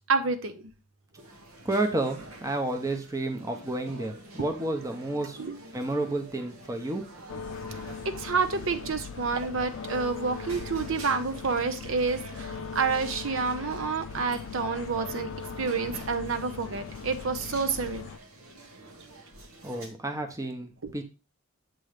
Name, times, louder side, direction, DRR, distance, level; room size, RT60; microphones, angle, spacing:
voice 1, 0.1-0.7 5.4-5.6 7.7-7.8 8.0-15.3 15.6-18.1 20.8-20.9, right 4 dB, 70° right, 7 dB, 0.7 m, -29 dB
sound 1, 1.2-19.9, right 2 dB, 85° right, 1.4 m, -48 dB
voice 2, 1.6-5.4 5.7-7.1 7.6-7.7 19.6-21.0, right 2 dB, 15° right, 5 dB, 0.8 m, -31 dB
sound 2, 7.3-18.2, left 6 dB, 60° left, 0.4 m, -40 dB
7.6 x 3.1 x 4.9 m, 0.32 s
head